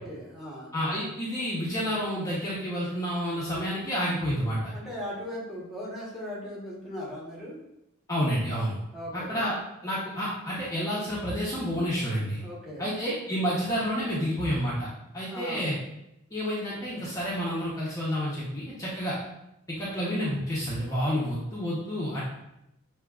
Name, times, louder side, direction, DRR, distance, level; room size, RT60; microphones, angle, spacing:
voice 1, 0.0-0.7 4.7-7.6 8.9-9.4 12.4-12.9 15.2-15.7, equal, ahead, -6 dB, 1.1 m, -38 dB
voice 2, 0.7-4.7 8.1-8.8 9.1-9.5 9.8-12.4 12.8-14.9 15.1-15.7 16.3-19.2 19.8-22.2, equal, 15° left, -7 dB, 0.8 m, -29 dB
6.3 x 2.8 x 2.4 m, 0.84 s
head